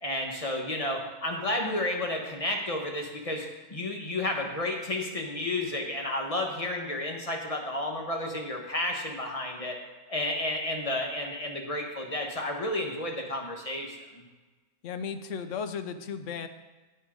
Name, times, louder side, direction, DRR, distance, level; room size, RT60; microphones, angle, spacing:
voice 1, 0.0-9.8 10.1-14.2, left 1 dB, 25° left, 1 dB, 1.1 m, -32 dB
voice 2, 14.8-16.5, left 6 dB, 65° left, 10 dB, 0.9 m, -35 dB
9.2 x 7.0 x 5.1 m, 1.2 s
omnidirectional pair, 1.6 m